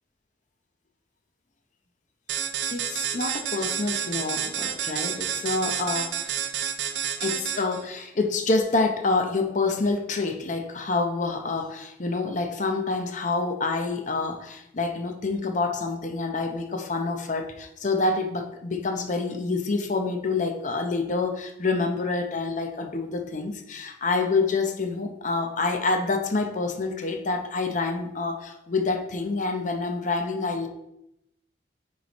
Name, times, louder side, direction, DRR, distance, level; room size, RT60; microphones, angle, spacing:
sound 1, 2.3-7.8, right 8 dB, 75° right, 0.5 m, -29 dB
voice 1, 2.7-6.2 7.2-30.7, left 3 dB, 45° left, 4 dB, 0.7 m, -27 dB
9.3 x 3.2 x 4.1 m, 0.84 s
head